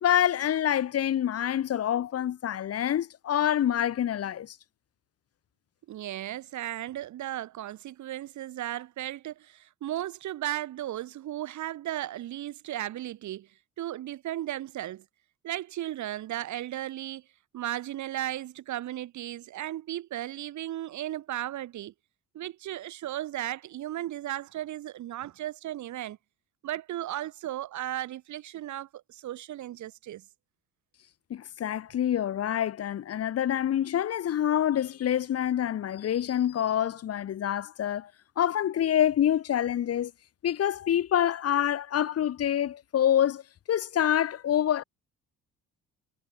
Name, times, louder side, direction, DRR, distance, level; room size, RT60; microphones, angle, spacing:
voice 1, 0.0-4.6 31.3-38.1 38.4-40.1 40.4-43.4 43.7-44.8, left 10 dB, 50° left, 1.4 m, -26 dB
voice 2, 5.9-13.5 13.8-15.0 15.4-17.2 17.5-21.9 22.3-26.2 26.6-30.2, right 13 dB, 65° right, 2.7 m, -35 dB
cardioid pair, 100°, 31 cm